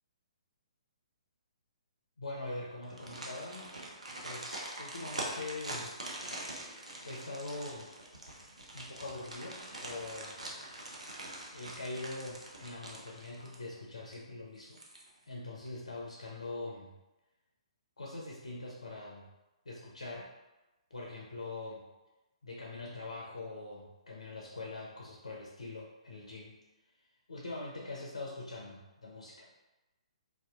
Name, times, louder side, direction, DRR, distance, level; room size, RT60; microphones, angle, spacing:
voice 1, 2.2-3.8 4.2-6.0 7.0-7.9 8.7-10.4 11.5-14.8 15.3-16.9 18.0-19.3 19.7-20.3 20.9-21.8 22.4-26.6 27.3-29.5, left 2 dB, 75° left, -3 dB, 0.5 m, -43 dB
sound 1, 2.8-13.8 14.1-14.2 14.6-15.3 15.7-15.8, right 1 dB, 90° right, 0.6 m, -44 dB
2.6 x 2.2 x 2.3 m, 1.0 s
figure-of-eight pair, 130°, 3 cm